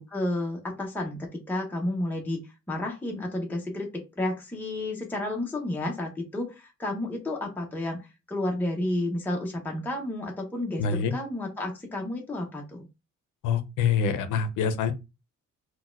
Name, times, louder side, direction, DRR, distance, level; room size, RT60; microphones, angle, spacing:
voice 1, 0.0-2.4 2.7-12.9, left 1 dB, 5° left, -1 dB, 0.7 m, -31 dB
voice 2, 10.8-11.1 13.4-14.9, left 6 dB, 85° left, 10 dB, 0.6 m, -25 dB
4.0 x 2.3 x 2.3 m, 0.26 s
cardioid pair, 90°, 30 cm